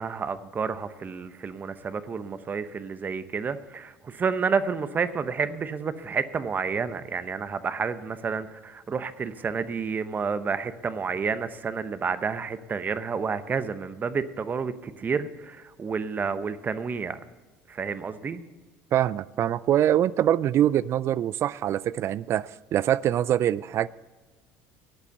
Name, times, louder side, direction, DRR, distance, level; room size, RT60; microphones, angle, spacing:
voice 1, 0.0-17.2 17.7-18.4, right 5 dB, 30° right, 0.8 m, -30 dB
voice 2, 18.9-23.9, right 11 dB, 50° right, 0.4 m, -24 dB
12.0 x 8.3 x 6.9 m
supercardioid pair, 90°, 6 cm